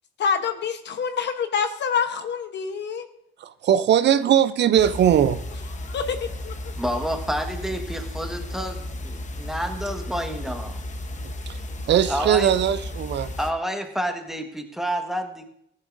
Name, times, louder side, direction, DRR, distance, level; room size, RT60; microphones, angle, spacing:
voice 1, 0.2-3.1 5.8-6.7, left 6 dB, 60° left, 8 dB, 1.0 m, -27 dB
voice 2, 3.4-5.4 11.9-13.3, right 9 dB, 60° right, 13 dB, 0.6 m, -19 dB
sound 1, 4.8-13.5, left 1 dB, 40° left, 1.0 m, -34 dB
voice 3, 6.8-10.8 12.1-12.5 13.4-15.5, equal, ahead, 4 dB, 1.4 m, -29 dB
14.5 x 10.5 x 2.6 m, 0.73 s
cardioid pair, 90°, 20 cm